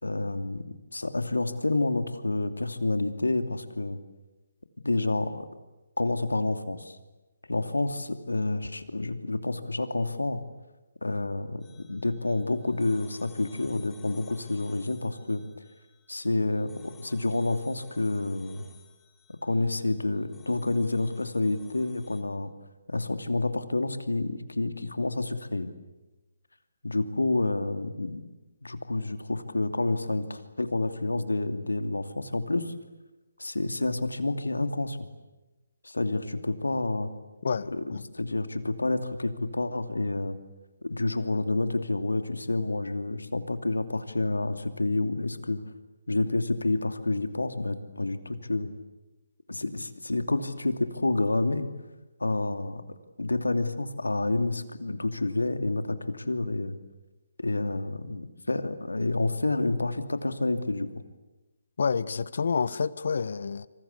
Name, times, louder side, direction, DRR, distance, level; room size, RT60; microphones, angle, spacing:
voice 1, 0.0-4.0 4.8-5.5 6.0-7.0 7.5-10.4 11.0-15.4 16.1-18.7 19.4-22.5 22.9-25.7 26.8-28.2 28.6-32.7 33.4-35.1 35.8-37.1 37.7-40.4 40.8-45.6 46.1-48.7 49.5-51.7 52.2-52.8 53.2-56.8 57.4-61.0, left 2 dB, 90° left, 9 dB, 2.7 m, -29 dB
sound 1, 11.6-22.2, left 6 dB, 10° left, 3.9 m, -56 dB
voice 2, 37.4-38.0 61.8-63.7, left 5 dB, 60° left, 17 dB, 1.3 m, -28 dB
27.0 x 26.0 x 8.4 m, 1.1 s
figure-of-eight pair, 150°, 0 cm